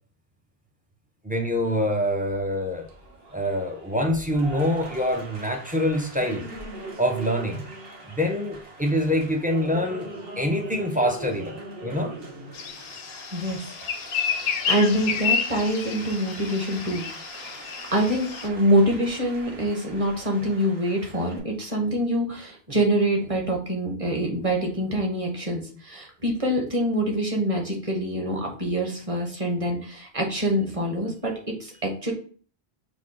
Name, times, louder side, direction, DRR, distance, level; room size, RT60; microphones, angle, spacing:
voice 1, 1.2-2.9 3.3-6.5 7.0-7.7 8.1-11.5 11.8-12.1, equal, 15° right, 2 dB, 0.3 m, -25 dB
Applause, 1.6-21.4, right 2 dB, 65° right, 1.1 m, -42 dB
sound 1, 12.5-18.5, left 6 dB, 65° left, 0.7 m, -30 dB
voice 2, 13.3-13.6 14.2-17.1 17.4-17.6 17.9-31.3 31.6-32.1, right 1 dB, 35° right, 1 dB, 1.0 m, -25 dB
4.9 x 2.2 x 3.7 m, 0.43 s
omnidirectional pair, 1.0 m